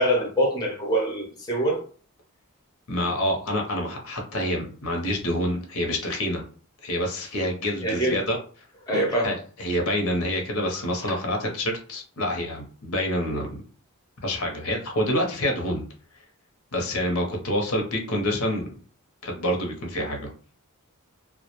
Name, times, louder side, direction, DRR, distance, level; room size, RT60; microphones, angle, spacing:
voice 1, 0.0-1.8 7.8-8.2 8.9-9.4 11.0-11.2, equal, 15° left, 0.5 m, -24 dB
voice 2, 2.9-6.4 6.8-8.4 9.2-13.6 14.2-15.9 16.7-18.7 19.2-20.3, equal, 70° left, 0.7 m, -27 dB
2.2 x 2.1 x 2.8 m
head